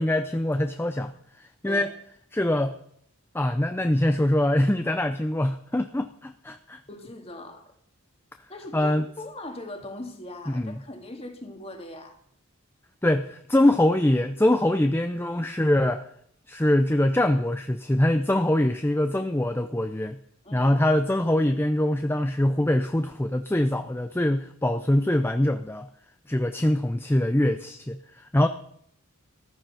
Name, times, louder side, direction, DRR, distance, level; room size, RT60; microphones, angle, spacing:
voice 1, 0.0-1.9 2.3-2.8 3.3-6.8 8.7-9.0 10.5-10.8 13.0-16.0 16.5-20.2 20.5-25.9 26.3-28.5, left 1 dB, 10° left, 8 dB, 0.5 m, -23 dB
voice 2, 6.9-7.7 8.5-12.2 20.4-20.7, left 1 dB, 25° left, 5 dB, 2.0 m, -40 dB
14.0 x 13.5 x 5.7 m, 0.66 s
head